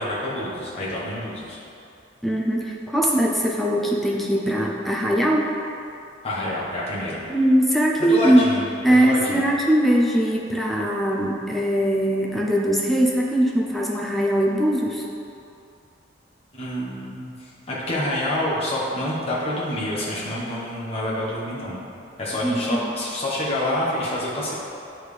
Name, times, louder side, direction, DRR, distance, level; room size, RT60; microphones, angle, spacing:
voice 1, 0.0-1.6 6.2-7.2 8.0-9.5 16.5-21.8 22.2-24.5, left 1 dB, 35° left, -6 dB, 1.0 m, -27 dB
voice 2, 2.2-5.5 7.3-8.4 8.8-15.1 22.4-22.9, right 1 dB, ahead, -3 dB, 0.4 m, -21 dB
10.0 x 3.5 x 3.2 m, 2.6 s
head